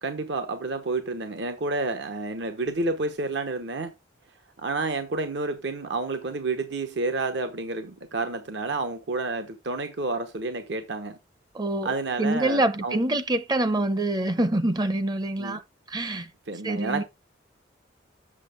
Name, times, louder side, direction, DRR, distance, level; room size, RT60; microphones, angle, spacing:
voice 1, 0.0-3.9 4.6-11.2 11.8-13.0 15.4-15.6 16.5-17.0, right 3 dB, 70° right, 0.9 m, -30 dB
voice 2, 11.5-11.9 12.2-15.6 15.9-16.3 16.6-17.0, right 1 dB, 20° right, 0.6 m, -25 dB
7.5 x 6.6 x 3.5 m
head